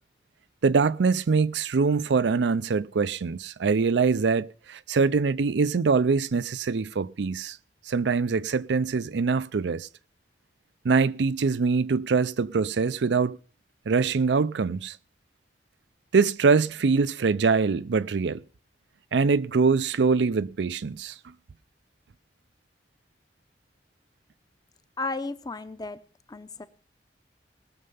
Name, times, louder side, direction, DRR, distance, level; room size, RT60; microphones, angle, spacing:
voice 1, 0.6-7.6 7.9-9.9 10.8-13.4 13.9-15.0 16.1-18.4 19.1-21.1, right 4 dB, 80° right, 0.5 m, -23 dB
voice 2, 25.0-26.0 26.3-26.7, left 3 dB, 25° left, 0.7 m, -33 dB
19.5 x 6.7 x 5.5 m
head